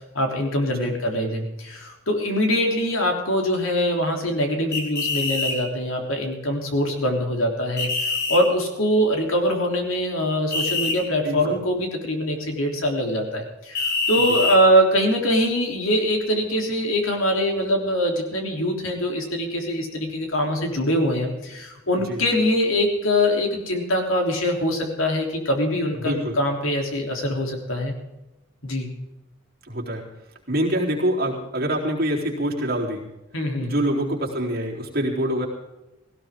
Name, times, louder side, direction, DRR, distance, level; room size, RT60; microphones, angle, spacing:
voice 1, 0.2-27.9 28.6-28.9 33.3-33.8, equal, 75° left, 2 dB, 3.5 m, -23 dB
sound 1, 4.7-5.6 7.8-8.4 10.5-11.0 13.7-14.6, left 4 dB, 50° left, 4.5 m, -24 dB
voice 2, 11.2-11.6 22.0-22.2 25.9-26.4 29.7-30.1 30.5-33.1 33.6-35.5, right 1 dB, 45° right, -3 dB, 3.8 m, -25 dB
17.5 x 17.0 x 3.8 m, 0.97 s
head